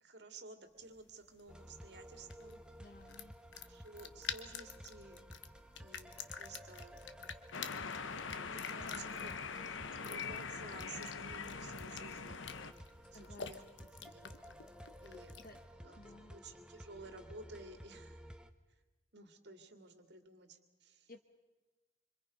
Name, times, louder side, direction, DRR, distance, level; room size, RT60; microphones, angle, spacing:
voice 1, 0.0-2.6 3.7-5.2 5.8-7.1 8.4-9.3 10.0-12.5 13.1-14.5 15.0-15.3 15.8-18.2 19.1-21.1, right 3 dB, 60° right, 6 dB, 2.2 m, -54 dB
sound 1, 0.8-15.6, left 7 dB, 70° left, 1.2 m, -50 dB
sound 2, 1.5-18.5, equal, 5° right, 0.9 m, -54 dB
voice 2, 2.8-3.3 8.8-9.1 13.1-13.5 15.4-15.6 15.9-16.3 21.1-21.2, left 2 dB, 50° left, 5 dB, 1.3 m, -55 dB
sound 3, 7.5-12.7, left 5 dB, 90° left, 1.0 m, -43 dB
26.0 x 26.0 x 5.3 m, 1.2 s
head